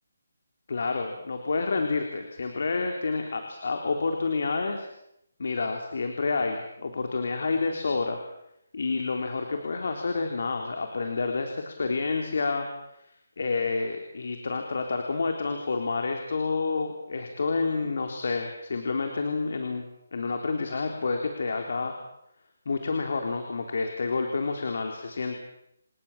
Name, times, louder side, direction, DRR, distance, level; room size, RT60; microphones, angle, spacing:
voice 1, 0.7-4.9 5.4-8.2 8.7-12.7 13.4-19.9 20.1-21.9 22.7-25.3, left 4 dB, 60° left, 4 dB, 3.8 m, -29 dB
30.0 x 17.5 x 7.5 m, 0.77 s
hypercardioid pair, 170°, 0 cm